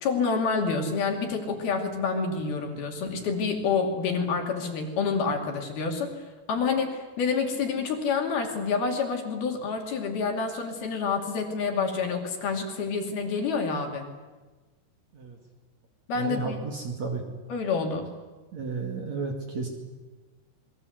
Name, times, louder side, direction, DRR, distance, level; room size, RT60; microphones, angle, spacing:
voice 1, 0.0-6.2 6.5-14.1 16.1-16.6 17.5-18.1, left 5 dB, 55° left, 2 dB, 4.2 m, -28 dB
voice 2, 16.1-17.4 18.5-19.7, right 4 dB, 45° right, 1 dB, 3.0 m, -33 dB
27.0 x 21.5 x 8.1 m, 1.2 s
omnidirectional pair, 5.4 m